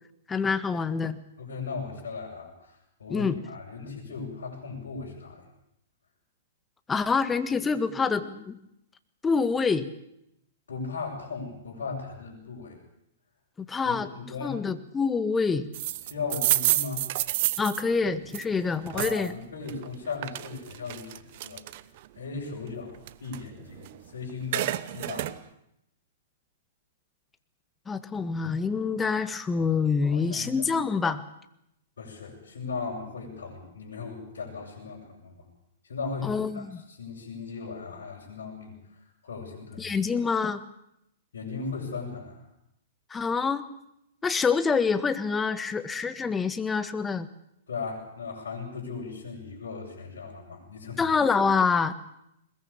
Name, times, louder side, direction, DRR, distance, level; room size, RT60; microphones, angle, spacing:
voice 1, 0.3-1.2 3.1-3.4 6.9-8.6 9.2-9.9 13.7-14.1 14.4-15.7 17.6-19.3 27.9-31.2 36.2-36.8 39.8-40.6 43.1-43.6 44.2-47.3 51.0-51.9, left 5 dB, 15° left, 11 dB, 1.7 m, -26 dB
voice 2, 1.4-5.4 10.7-12.8 13.8-14.6 16.1-17.0 18.9-21.6 22.2-25.3 29.6-29.7 30.0-30.7 32.0-35.5 35.9-38.8 39.2-40.0 41.3-42.4 47.7-51.1, left 4 dB, 75° left, -4 dB, 7.1 m, -37 dB
sound 1, 15.7-19.3 19.7-22.0 22.5-24.0 24.3-25.4, right 15 dB, 50° right, 1.0 m, -29 dB
21.5 x 21.0 x 8.6 m, 0.80 s
hypercardioid pair, 115°, 0 cm